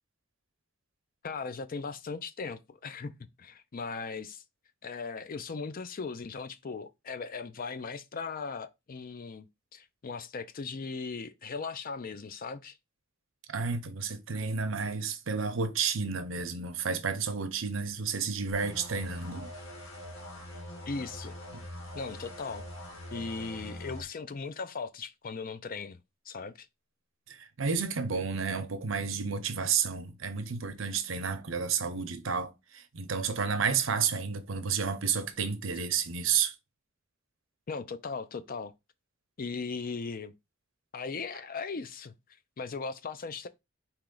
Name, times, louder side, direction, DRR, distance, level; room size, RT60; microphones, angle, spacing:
voice 1, 1.2-4.4 4.8-9.4 9.7-12.8 20.9-21.4 21.9-22.7 23.1-26.0 26.3-26.7 37.7-38.7 39.4-40.3 40.9-42.1 42.6-43.5, left 4 dB, 45° left, 0.5 m, -38 dB
voice 2, 13.5-19.5 27.3-36.5, right 6 dB, 75° right, 0.7 m, -31 dB
sound 1, 18.5-24.0, left 1 dB, 80° left, 1.8 m, -43 dB
4.4 x 3.0 x 3.8 m
head